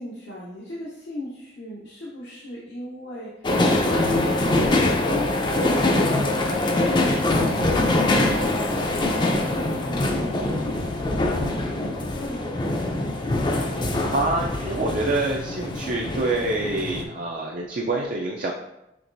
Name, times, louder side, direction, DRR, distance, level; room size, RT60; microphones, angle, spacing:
voice 1, 0.0-12.5, equal, 80° left, -5 dB, 0.8 m, -38 dB
sound 1, 3.4-17.0, left 2 dB, 25° left, 0.4 m, -23 dB
voice 2, 14.1-18.5, right 2 dB, 50° right, -1 dB, 0.4 m, -26 dB
5.8 x 3.0 x 2.6 m, 0.88 s
head